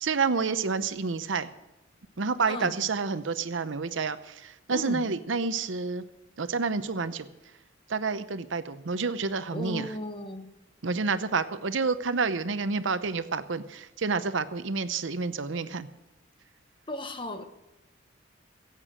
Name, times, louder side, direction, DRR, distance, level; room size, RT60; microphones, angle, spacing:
voice 1, 0.0-1.5 2.2-4.2 4.7-6.0 6.4-7.3 7.9-9.9 10.8-13.6 14.0-15.9, right 4 dB, 75° right, 12 dB, 0.8 m, -29 dB
voice 2, 2.5-2.8 4.7-5.1 9.5-10.5 16.9-17.5, left 1 dB, 25° left, 8 dB, 1.1 m, -36 dB
16.0 x 8.3 x 7.5 m, 0.99 s
head